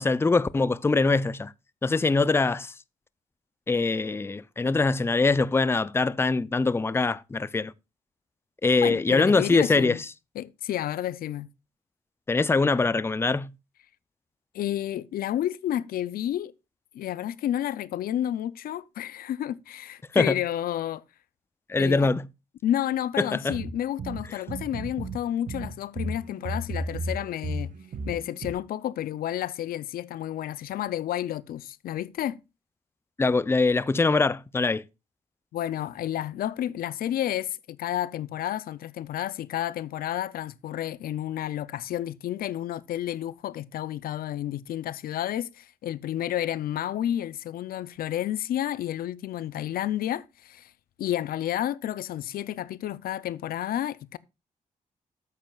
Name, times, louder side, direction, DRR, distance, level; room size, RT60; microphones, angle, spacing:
voice 1, 0.0-1.5 1.8-2.7 3.7-7.7 8.6-10.0 12.3-13.5 20.1-20.4 21.7-22.3 23.2-23.6 33.2-34.8, left 3 dB, 15° left, 0.4 m, -23 dB
voice 2, 8.8-10.0 10.4-11.5 14.5-16.5 16.9-21.0 21.8-22.1 22.6-27.7 28.1-32.4 35.5-50.7 51.0-54.2, left 12 dB, 85° left, 0.4 m, -31 dB
sound 1, 23.5-25.2 25.5-28.5, right 2 dB, 60° right, 1.2 m, -34 dB
13.5 x 7.5 x 2.3 m
cardioid pair, 75°, 15 cm